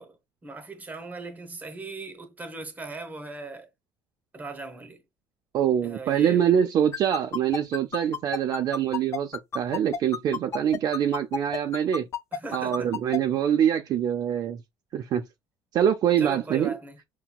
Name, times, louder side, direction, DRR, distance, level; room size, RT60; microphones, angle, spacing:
voice 1, 0.0-3.7 4.3-5.0 5.8-6.4 12.3-13.0 16.2-17.0, right 3 dB, 20° right, 0.9 m, -39 dB
voice 2, 5.5-12.1 12.5-14.6 14.9-15.2 15.7-16.7, right 9 dB, 45° right, 0.4 m, -24 dB
sound 1, 6.9-13.2, left 6 dB, 30° left, 0.4 m, -30 dB
5.8 x 2.2 x 2.3 m
cardioid pair, 125°, 9 cm